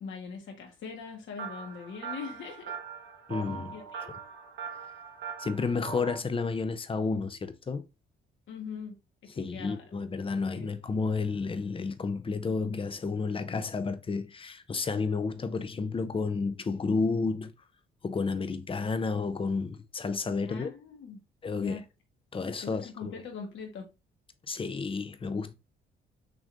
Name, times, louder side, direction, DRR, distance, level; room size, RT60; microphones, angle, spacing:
voice 1, 0.0-2.8 3.7-4.1 8.5-9.0 9.2-9.8 10.5-10.7 20.5-21.2 21.5-21.9 22.6-23.9, left 5 dB, 75° left, 1.6 m, -42 dB
sound 1, 1.4-6.2, right 6 dB, 65° right, 1.4 m, -41 dB
voice 2, 3.3-3.7 5.4-7.8 9.4-17.5 18.0-20.7 21.4-21.8 22.3-23.1 24.5-25.5, left 4 dB, 25° left, 0.7 m, -31 dB
6.1 x 3.2 x 2.6 m
cardioid pair, 90°, 20 cm